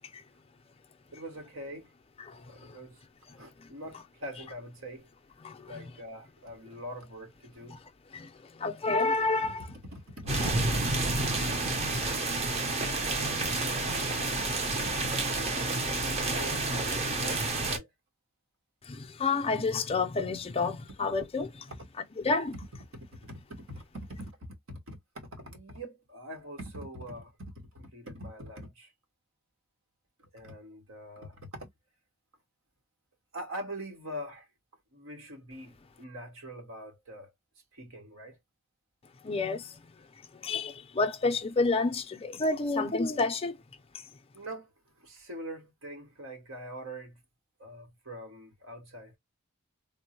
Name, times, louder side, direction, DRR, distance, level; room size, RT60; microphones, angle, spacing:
voice 1, 1.1-1.9 2.4-3.0 3.4-5.1 5.6-7.8 9.4-9.5 9.8-11.1 11.5-12.8 13.1-14.3 14.7-15.2 15.9-17.9 21.7-21.9 22.9-28.9 30.2-31.7 33.3-34.5 34.9-37.3 37.7-38.4 44.3-47.2 47.6-49.2, equal, 85° right, 1.4 m, -44 dB
voice 2, 8.6-9.7 10.4-10.5 18.9-21.7 22.2-22.5 39.2-39.8 40.4-43.6, left 3 dB, 30° left, 0.5 m, -29 dB
sound 1, 10.3-17.8, right 2 dB, 30° right, 0.7 m, -29 dB
3.5 x 2.1 x 2.9 m
head